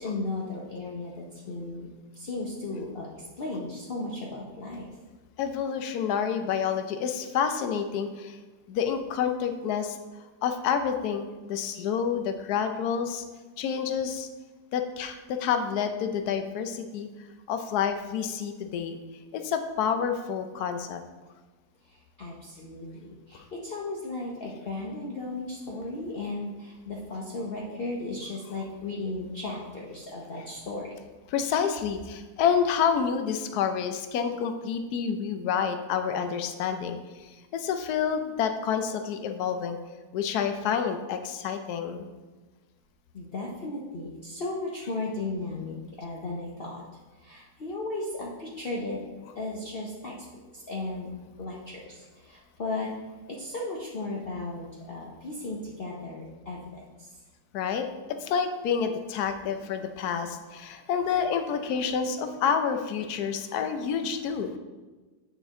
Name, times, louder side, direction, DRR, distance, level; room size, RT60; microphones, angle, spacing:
voice 1, 0.0-1.9 2.1-3.1 3.4-4.9 21.8-30.9 43.1-46.8 47.2-49.0 49.4-50.1 50.5-51.1 51.4-52.9 53.3-57.1, left 2 dB, 45° left, -3 dB, 0.9 m, -35 dB
voice 2, 5.4-8.4 8.7-10.0 10.4-13.2 13.6-14.3 14.7-17.1 17.5-19.0 19.3-21.0 31.3-39.8 40.1-42.1 57.5-57.9 58.2-64.6, left 7 dB, 75° left, 7 dB, 1.2 m, -28 dB
8.6 x 5.2 x 3.7 m, 1.3 s
omnidirectional pair, 1.7 m